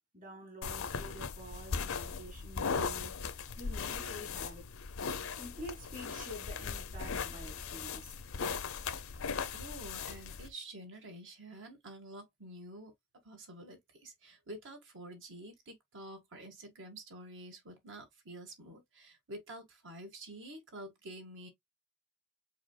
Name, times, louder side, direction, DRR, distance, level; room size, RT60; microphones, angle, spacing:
voice 1, 0.1-4.6 5.4-8.2, equal, 40° right, 2.2 m, -48 dB
sound 1, 0.6-10.5, left 5 dB, 70° left, 0.6 m, -38 dB
voice 2, 9.5-12.9 13.2-21.5, right 1 dB, 60° right, 1.8 m, -49 dB
4.9 x 4.4 x 2.3 m
head